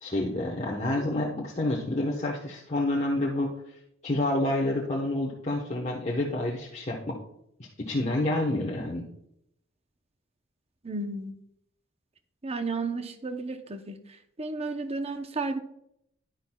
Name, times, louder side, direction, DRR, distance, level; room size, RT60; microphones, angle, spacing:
voice 1, 0.0-3.5 4.0-7.1 7.9-9.0, left 1 dB, 35° left, 1.1 m, -28 dB
voice 2, 10.8-11.3 12.4-14.0 14.4-15.6, right 3 dB, 30° right, 0.7 m, -32 dB
10.5 x 10.0 x 2.3 m
head